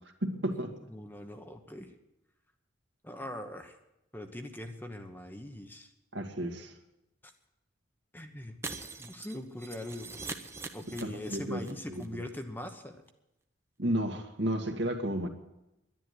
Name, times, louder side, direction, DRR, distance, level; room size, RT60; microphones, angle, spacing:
voice 1, 0.2-0.7 6.1-6.7 11.0-11.6 12.0-12.1 13.8-15.3, right 1 dB, 65° right, 5 dB, 2.0 m, -32 dB
voice 2, 0.9-1.9 3.0-3.8 4.1-5.9 8.1-8.6 9.0-10.2 10.6-13.0, left 1 dB, 10° left, 6 dB, 1.0 m, -41 dB
Shatter, 8.6-11.7 12.0-12.1 12.4-12.5, right 3 dB, 15° right, 0.9 m, -42 dB
11.0 x 10.5 x 9.9 m, 0.90 s
head